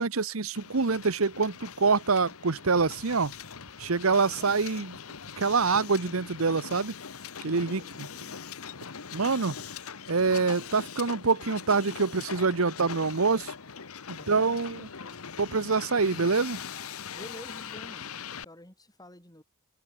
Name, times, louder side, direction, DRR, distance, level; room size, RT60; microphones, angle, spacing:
voice 1, 0.0-3.3 3.8-5.0 5.4-6.9 7.4-8.1 9.1-9.5 10.1-13.5 14.1-14.9 15.4-16.6, right 4 dB, 70° right, 1.0 m, -26 dB
Hiss, 0.5-18.4, left 6 dB, 80° left, 1.2 m, -41 dB
voice 2, 4.1-4.5 7.5-8.4 14.1-15.2 17.1-18.1 18.4-19.4, left 1 dB, 15° left, 7.9 m, -50 dB
head